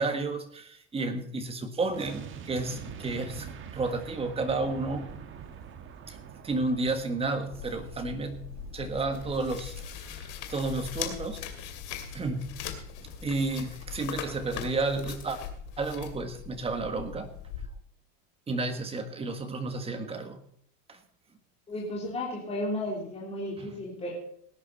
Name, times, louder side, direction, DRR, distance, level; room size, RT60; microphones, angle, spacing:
voice 1, 0.0-3.5 3.7-5.1 6.1-6.2 6.4-8.5 8.7-9.8 10.1-11.5 12.1-12.5 13.2-15.4 15.8-17.3 18.5-20.4 20.9-21.0 23.6-23.7, right 3 dB, 15° right, 6 dB, 1.6 m, -31 dB
sound 1, 1.9-15.1 15.4-15.5, right 7 dB, 30° right, 1.5 m, -47 dB
sound 2, 7.5-17.7, left 8 dB, 50° left, 2.6 m, -40 dB
voice 2, 21.7-24.1, left 1 dB, 15° left, -4 dB, 3.5 m, -33 dB
18.5 x 10.0 x 4.2 m, 0.66 s
supercardioid pair, 150°, 39 cm